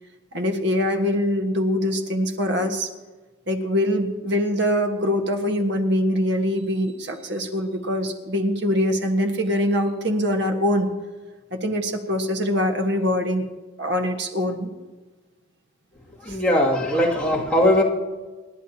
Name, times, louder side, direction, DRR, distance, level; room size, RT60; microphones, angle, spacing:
voice 1, 0.3-2.9 3.5-10.9 11.5-13.4 13.8-14.9 16.3-16.4, equal, 55° right, 4 dB, 1.6 m, -23 dB
voice 2, 16.2-17.8, left 1 dB, 5° left, -6 dB, 2.6 m, -20 dB
28.0 x 10.5 x 2.9 m, 1.3 s
head